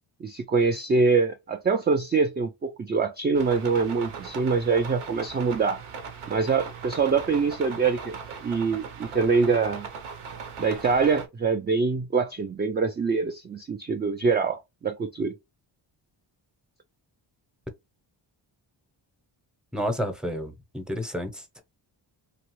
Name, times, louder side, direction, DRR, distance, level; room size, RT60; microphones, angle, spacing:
voice 1, 0.2-5.8 6.3-9.9 10.6-15.3, right 4 dB, 25° right, 0.3 m, -24 dB
sound 1, 3.3-11.3, right 5 dB, 80° right, 0.9 m, -39 dB
voice 2, 19.7-21.6, equal, ahead, 0.7 m, -31 dB
2.9 x 2.3 x 3.1 m
cardioid pair, 70°, 48 cm